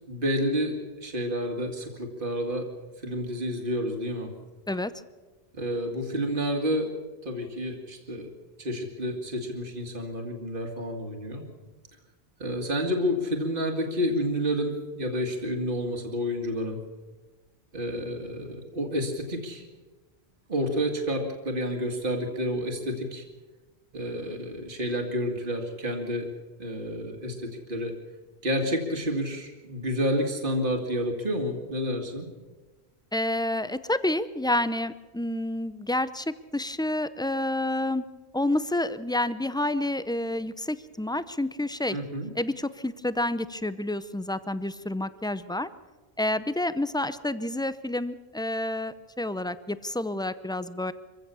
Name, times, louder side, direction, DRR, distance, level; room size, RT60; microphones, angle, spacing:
voice 1, 0.1-2.7 3.0-4.3 5.5-6.9 7.2-8.3 8.6-11.4 12.4-16.8 17.7-19.6 20.5-23.2 23.9-26.3 26.6-27.9 28.4-32.3 41.9-42.3, equal, 50° right, 3 dB, 2.3 m, -29 dB
voice 2, 33.1-38.0 38.3-42.0 42.3-45.7 46.2-50.9, left 1 dB, 5° left, 14 dB, 0.4 m, -29 dB
24.5 x 15.5 x 7.0 m, 1.3 s
omnidirectional pair, 1.1 m